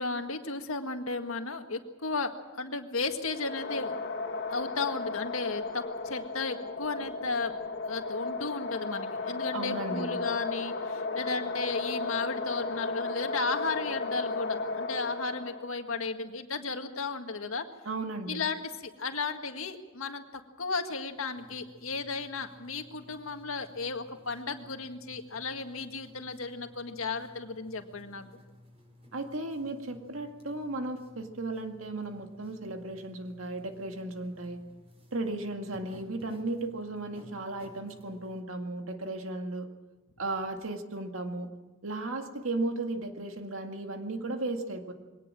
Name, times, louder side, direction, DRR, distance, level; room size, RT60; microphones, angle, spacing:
voice 1, 0.0-4.0 4.5-7.5 7.9-17.7 18.3-28.3, left 4 dB, 90° left, 6 dB, 1.8 m, -34 dB
sound 1, 3.2-15.7, left 3 dB, 55° left, 1.9 m, -35 dB
voice 2, 9.5-10.2 17.9-18.4 29.1-34.6 35.1-39.7 40.2-41.5 41.8-44.9, right 2 dB, 80° right, 5 dB, 2.1 m, -35 dB
sound 2, 21.3-38.4, left 1 dB, 30° right, 5.3 m, -56 dB
22.0 x 18.5 x 7.6 m, 1.2 s
head